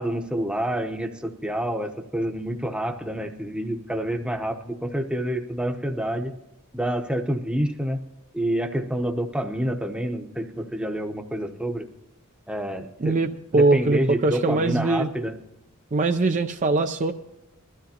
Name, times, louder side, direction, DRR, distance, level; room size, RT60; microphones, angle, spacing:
voice 1, 0.0-6.3 6.7-8.0 8.3-11.9 12.5-13.2 13.5-15.4, right 1 dB, 5° right, 4 dB, 0.8 m, -28 dB
voice 2, 13.0-15.1 15.9-17.1, right 2 dB, 35° right, 7 dB, 0.4 m, -22 dB
21.5 x 13.0 x 2.8 m, 0.93 s
head